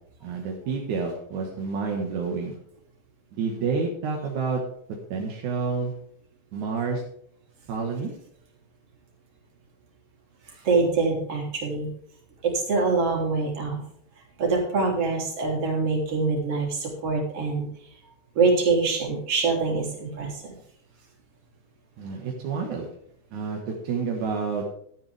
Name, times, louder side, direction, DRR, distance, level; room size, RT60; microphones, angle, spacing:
voice 1, 0.2-2.6 3.3-4.6 5.1-5.9 6.5-7.0 7.7-8.1 22.0-22.9 23.3-24.6, right 5 dB, 65° right, 0 dB, 2.0 m, -29 dB
voice 2, 10.5-11.9 12.4-13.8 14.4-17.7 18.4-20.5, right 4 dB, 35° right, 0 dB, 3.5 m, -24 dB
12.5 x 12.5 x 3.5 m, 0.69 s
omnidirectional pair, 5.7 m